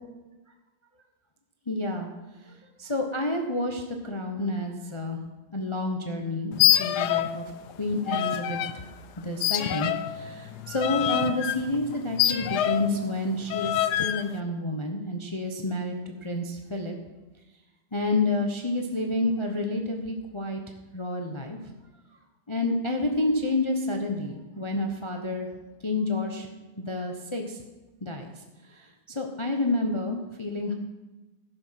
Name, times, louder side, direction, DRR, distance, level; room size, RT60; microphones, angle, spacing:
voice 1, 1.7-2.1 2.8-5.2 5.5-6.5 6.8-7.4 7.8-8.6 9.2-15.9 16.2-17.0 17.9-20.6 20.9-21.6 22.5-25.5 25.8-26.5 26.8-27.6 28.0-28.3 29.1-30.7, left 2 dB, 25° left, 3 dB, 0.6 m, -29 dB
sound 1, 6.5-7.4 7.7-8.7 9.4-13.0 13.5-14.2, left 12 dB, 70° left, 1.0 m, -26 dB
15.5 x 6.9 x 5.8 m, 1.1 s
omnidirectional pair, 2.1 m